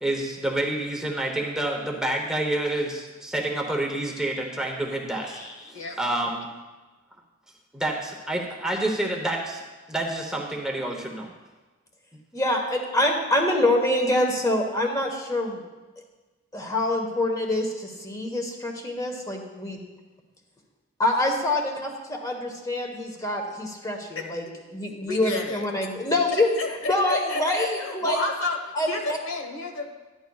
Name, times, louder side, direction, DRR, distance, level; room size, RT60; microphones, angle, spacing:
voice 1, 0.0-5.4 5.7-6.5 7.7-9.6 9.9-11.3, right 1 dB, 5° right, 0 dB, 0.9 m, -28 dB
voice 2, 5.2-6.0 24.1-24.2 25.0-25.6 26.3-29.9, left 2 dB, 70° left, 3 dB, 1.3 m, -31 dB
voice 3, 12.3-15.6 16.5-19.8 21.0-21.6 22.1-24.4 24.7-26.5 26.8-28.2 28.7-29.2, left 1 dB, 15° left, 1 dB, 1.2 m, -25 dB
13.0 x 10.5 x 2.4 m, 1.2 s
head